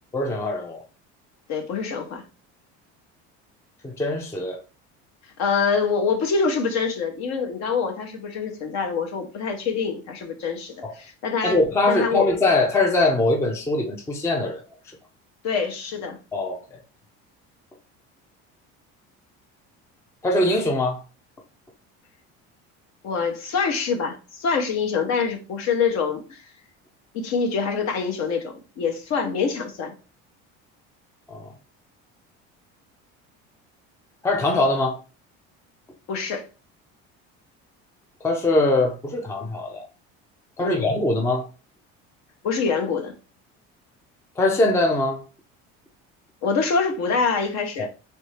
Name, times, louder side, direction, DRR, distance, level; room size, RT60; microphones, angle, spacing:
voice 1, 0.1-0.8 3.8-4.6 10.8-10.9 11.4-14.6 16.3-16.6 20.2-21.0 31.3-31.5 34.2-35.0 38.2-39.8 40.6-41.5 44.4-45.2 47.8-47.9, left 2 dB, 10° left, 0.4 m, -22 dB
voice 2, 1.5-2.2 5.4-11.6 11.9-12.3 15.4-16.2 23.0-26.4 27.1-29.9 36.1-36.4 40.6-40.9 42.4-43.1 46.4-47.9, left 5 dB, 60° left, 1.0 m, -25 dB
3.3 x 2.6 x 3.2 m
cardioid pair, 135°, 31 cm